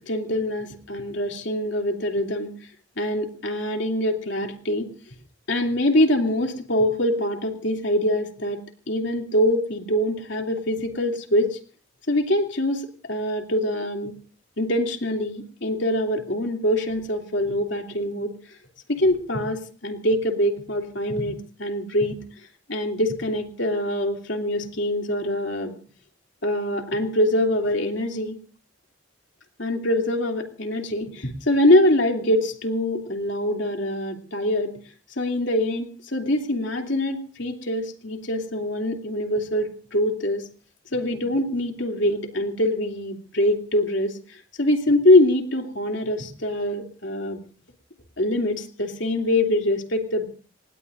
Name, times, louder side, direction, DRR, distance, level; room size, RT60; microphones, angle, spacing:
voice 1, 0.0-2.5 3.0-4.9 5.5-11.6 12.1-14.1 14.6-18.4 18.9-22.2 22.7-25.8 26.4-28.4 29.6-34.8 35.2-40.5 40.9-47.4 48.2-50.2, left 1 dB, 65° left, 3 dB, 2.8 m, -24 dB
27.5 x 19.5 x 2.6 m, 0.39 s
head